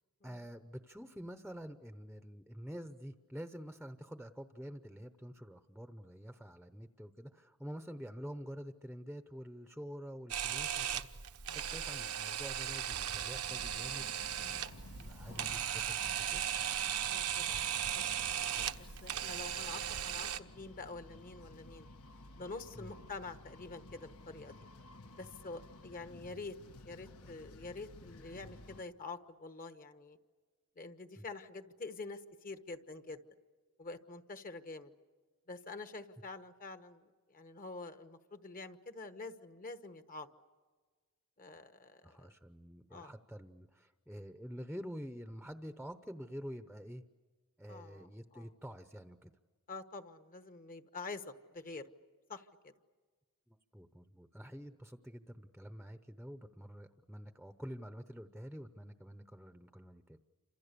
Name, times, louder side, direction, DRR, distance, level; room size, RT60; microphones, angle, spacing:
voice 1, 0.2-16.4 22.7-22.9 26.2-26.7 27.1-27.3 31.2-31.3 42.0-47.0 47.6-49.3 53.5-60.2, equal, ahead, 9 dB, 0.8 m, -48 dB
Camera, 10.3-20.4, right 9 dB, 80° right, 1.1 m, -37 dB
sound 1, 13.4-28.8, left 2 dB, 75° left, 1.3 m, -54 dB
voice 2, 17.1-17.7 17.9-18.2 18.5-21.9 22.4-24.6 25.2-26.6 26.8-30.2 30.8-33.2 33.8-34.9 35.5-40.3 41.4-42.3 42.9-43.1 47.7-48.1 48.3-48.5 49.7-51.9 52.3-52.7, left 3 dB, 40° left, 9 dB, 1.3 m, -47 dB
29.0 x 26.5 x 6.9 m, 1.4 s
head